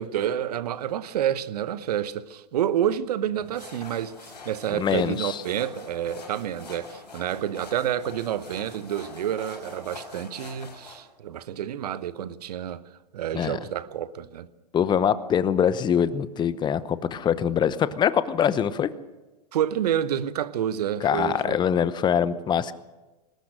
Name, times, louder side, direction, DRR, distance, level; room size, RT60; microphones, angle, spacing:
voice 1, 0.0-12.8 13.1-14.5 19.5-21.6, right 10 dB, 70° right, 1.0 m, -29 dB
sound 1, 3.4-11.0, left 4 dB, 90° left, 5.5 m, -45 dB
voice 2, 4.7-5.4 13.3-13.6 14.7-18.9 21.0-22.7, left 8 dB, 20° left, 0.9 m, -23 dB
21.5 x 19.0 x 6.4 m
hypercardioid pair, 110°, 21 cm